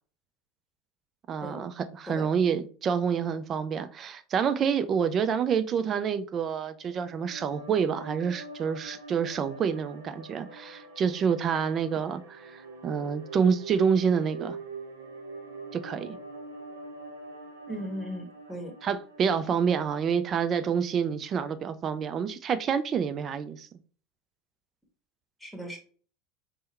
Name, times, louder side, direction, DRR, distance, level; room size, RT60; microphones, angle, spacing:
voice 1, 1.3-14.6 15.7-16.2 18.8-23.7, right 7 dB, 40° right, 0.4 m, -28 dB
sound 1, 6.7-20.1, right 3 dB, 80° right, 0.6 m, -44 dB
voice 2, 17.7-18.7 25.4-25.8, equal, 5° left, 1.3 m, -37 dB
3.6 x 2.2 x 4.1 m
hypercardioid pair, 85°, 0 cm